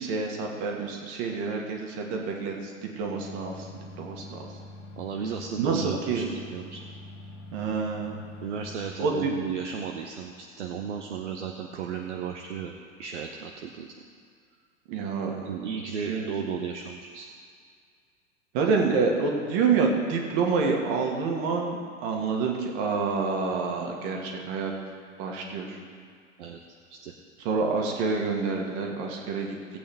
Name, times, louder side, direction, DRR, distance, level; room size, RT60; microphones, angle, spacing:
voice 1, 0.0-3.7 4.0-4.4 5.6-6.2 7.5-8.2 9.0-9.3 14.9-15.4 16.0-16.3 18.5-24.7 25.2-25.8 27.4-29.6, right 4 dB, 45° right, 1 dB, 1.9 m, -27 dB
sound 1, 2.9-9.6, left 2 dB, 75° left, 1.6 m, -45 dB
voice 2, 5.0-6.8 8.4-12.7 13.0-14.0 15.2-17.3 26.4-26.6 26.9-27.1, right 7 dB, 65° right, 3 dB, 0.9 m, -35 dB
17.0 x 8.5 x 3.5 m, 2.1 s
figure-of-eight pair, 90°, 39 cm